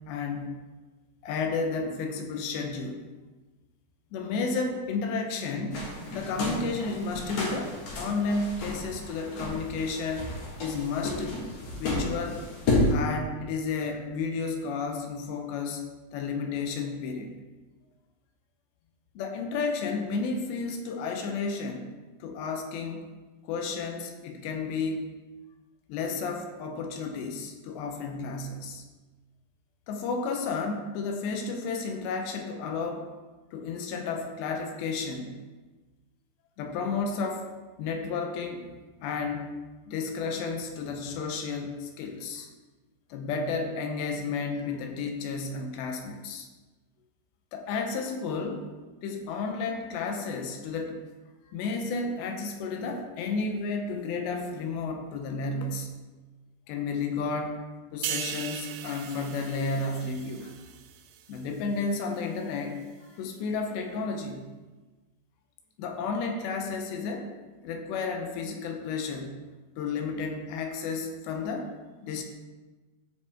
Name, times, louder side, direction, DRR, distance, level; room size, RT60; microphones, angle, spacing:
voice 1, 0.1-0.6 1.2-3.0 4.1-5.9 6.1-10.3 10.6-11.4 11.8-12.4 12.9-15.8 16.1-17.3 19.2-21.9 22.2-23.1 23.5-25.1 25.9-28.8 29.9-33.1 33.5-35.4 36.6-37.5 37.8-38.7 39.0-39.5 39.9-42.5 43.1-46.5 47.5-48.7 49.0-51.0 51.5-55.9 56.7-57.6 57.9-60.5 61.3-64.5 65.8-67.3 67.6-69.4 69.8-71.7 72.0-72.2, left 4 dB, 80° left, 4 dB, 2.9 m, -32 dB
sound 1, 5.7-12.9, left 2 dB, 50° left, 2.2 m, -32 dB
sound 2, 58.0-61.6 61.9-62.2, right 10 dB, 85° right, 2.4 m, -38 dB
14.0 x 4.9 x 3.7 m, 1.3 s
omnidirectional pair, 5.2 m